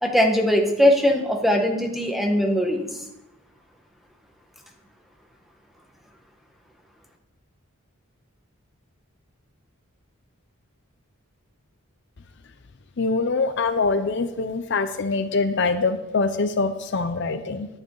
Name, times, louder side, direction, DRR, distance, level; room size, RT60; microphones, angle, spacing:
voice 1, 0.0-2.9, equal, ahead, 2 dB, 1.2 m, -20 dB
voice 2, 13.0-17.7, left 4 dB, 55° left, 9 dB, 0.5 m, -24 dB
11.0 x 9.7 x 3.8 m, 0.91 s
head